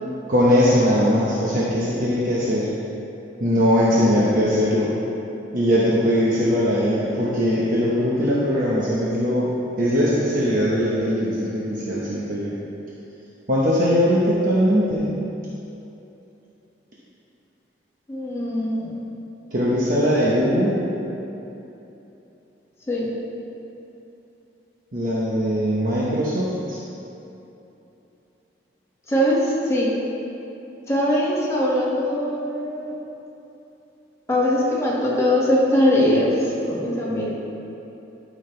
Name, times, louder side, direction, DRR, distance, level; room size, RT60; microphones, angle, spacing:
voice 1, 0.3-2.7 3.4-4.9 5.5-12.5 13.5-15.1 19.5-20.8 24.9-26.8, equal, 50° right, -7 dB, 1.1 m, -20 dB
voice 2, 18.1-19.1 22.9-23.1 29.1-29.9 30.9-32.9 34.3-36.3 36.7-37.3, left 1 dB, 15° left, -6 dB, 1.8 m, -21 dB
13.0 x 6.4 x 3.3 m, 3.0 s
head